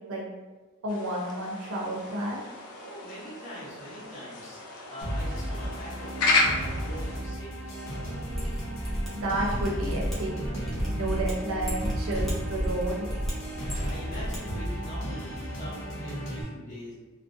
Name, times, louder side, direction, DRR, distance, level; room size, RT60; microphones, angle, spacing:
voice 1, 0.8-2.4 9.1-10.6 10.9-13.1, right 1 dB, 70° right, -2 dB, 0.6 m, -31 dB
sound 1, 0.9-7.2, left 3 dB, 90° left, 0.4 m, -32 dB
voice 2, 2.7-4.6 4.9-8.0 13.5-16.9, equal, 35° left, -9 dB, 0.9 m, -42 dB
sound 2, 5.0-16.4, equal, 60° left, 0.8 m, -34 dB
Mechanisms, 8.3-14.4 14.6-14.7, equal, ahead, 0.5 m, -33 dB
2.5 x 2.0 x 2.5 m, 1.3 s
head